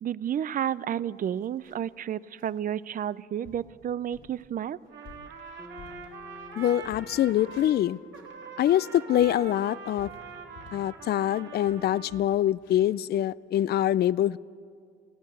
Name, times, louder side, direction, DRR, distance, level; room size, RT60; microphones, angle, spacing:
voice 1, 0.0-4.8, right 10 dB, 45° right, 19 dB, 0.5 m, -31 dB
sound 1, 0.7-0.8 1.2-2.0 2.4-2.6 3.1-3.2 3.4-3.7 4.1-4.4 4.8-6.5 6.8-8.4 8.8-10.9 11.3-11.4 11.6-13.8, left 6 dB, 80° left, 3.7 m, -53 dB
Trumpet, 4.9-7.8 8.1-12.2, right 6 dB, 65° right, 2.3 m, -44 dB
Bass guitar, 5.6-10.0, left 4 dB, ahead, 1.7 m, -51 dB
voice 2, 6.6-8.0 8.6-10.1 10.7-14.4, left 12 dB, 55° left, 20 dB, 0.4 m, -24 dB
20.5 x 15.5 x 8.3 m, 2.2 s
cardioid pair, 90°, 20 cm